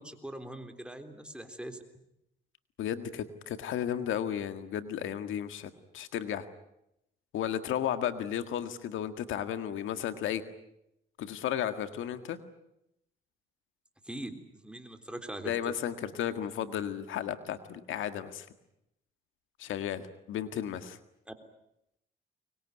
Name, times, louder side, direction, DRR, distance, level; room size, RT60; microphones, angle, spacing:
voice 1, 0.0-1.8 14.0-15.7 21.3-21.4, right 1 dB, 5° right, 7 dB, 3.6 m, -42 dB
voice 2, 2.8-6.4 7.3-10.4 11.2-12.4 15.5-18.5 19.6-21.0, left 10 dB, 80° left, 10 dB, 1.8 m, -34 dB
24.0 x 21.5 x 9.7 m, 0.82 s
cardioid pair, 90°, 20 cm